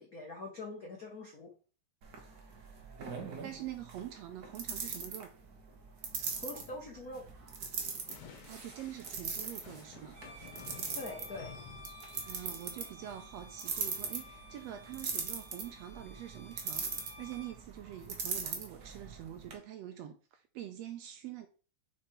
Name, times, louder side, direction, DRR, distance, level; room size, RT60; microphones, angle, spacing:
voice 1, 0.0-1.5 6.3-7.2 10.9-11.5, left 2 dB, 85° left, 0.7 m, -43 dB
sound 1, 2.0-19.5, right 5 dB, 65° right, 0.9 m, -42 dB
voice 2, 3.4-5.3 8.4-10.2 12.2-21.5, right 11 dB, 80° right, 1.6 m, -45 dB
sound 2, 8.1-13.2, left 7 dB, 65° left, 2.1 m, -53 dB
Bowed string instrument, 10.1-17.6, left 1 dB, 45° right, 1.4 m, -54 dB
5.2 x 4.7 x 4.3 m
omnidirectional pair, 3.4 m